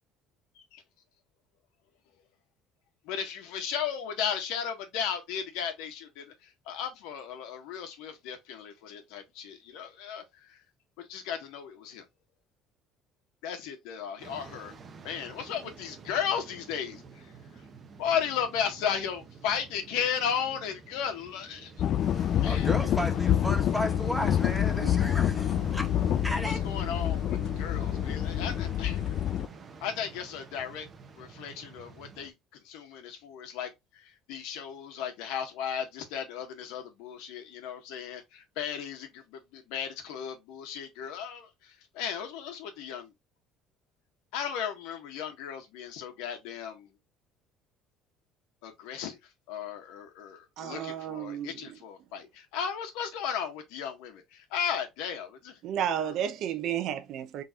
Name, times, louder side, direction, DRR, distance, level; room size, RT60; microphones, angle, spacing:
voice 1, 3.0-10.6 11.0-12.0 13.4-14.7 15.0-17.3 18.0-21.7 22.4-22.7 26.4-29.0 29.8-30.9 31.2-32.3 32.6-33.7 34.0-43.1 44.3-46.9 48.6-49.2 49.5-55.6 56.0-56.1, left 8 dB, 90° left, 1.5 m, -35 dB
sound 1, 14.2-32.3, right 5 dB, 35° right, 0.9 m, -46 dB
sound 2, 21.8-29.5, left 10 dB, 50° left, 0.4 m, -27 dB
voice 2, 22.4-25.9 26.1-26.6, equal, ahead, 1.3 m, -33 dB
voice 3, 50.6-51.5 55.6-57.4, right 9 dB, 60° right, 0.8 m, -32 dB
4.2 x 3.9 x 2.5 m
cardioid pair, 135°, 0 cm